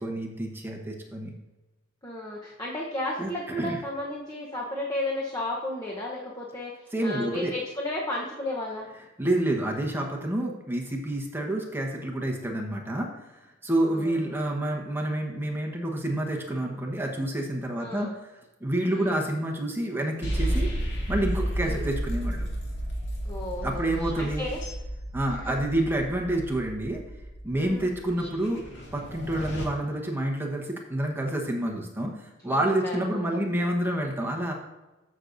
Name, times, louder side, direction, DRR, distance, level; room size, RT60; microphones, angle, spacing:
voice 1, 0.0-1.3 3.2-3.3 3.6-3.8 6.9-7.5 9.2-13.1 13.6-18.1 18.6-20.7 21.1-22.5 23.6-24.5 25.1-27.0 27.4-28.6 28.9-34.5, right 1 dB, 10° right, 0 dB, 1.1 m, -28 dB
voice 2, 2.0-8.9 13.9-14.4 17.8-18.2 18.9-19.2 21.6-21.9 23.2-23.9 24.2-24.6 25.3-25.6 27.5-27.9 32.4-33.4, left 1 dB, 20° left, -3 dB, 0.9 m, -34 dB
sound 1, 20.2-29.6, right 1 dB, 65° left, 2.2 m, -32 dB
13.5 x 6.4 x 2.6 m, 1.1 s
head